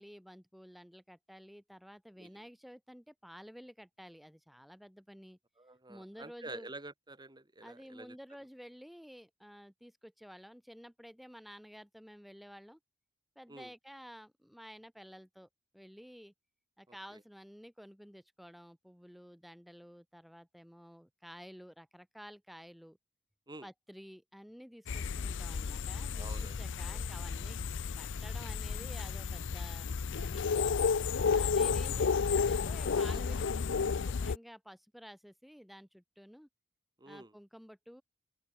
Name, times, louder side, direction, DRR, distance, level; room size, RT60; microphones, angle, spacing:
voice 1, 0.0-5.4 5.9-6.7 7.6-12.8 13.4-16.3 16.8-23.0 23.6-27.6 27.9-29.9 30.2-30.5 31.3-36.5 37.1-38.0, equal, ahead, 4.2 m, -52 dB
voice 2, 5.6-8.2 13.5-13.7 16.9-17.2 23.5-23.7 26.1-27.0 31.6-32.2 32.9-33.2 37.0-37.3, right 2 dB, 20° right, 2.6 m, -49 dB
sound 1, 24.9-34.4, left 5 dB, 60° left, 0.5 m, -32 dB
open air
head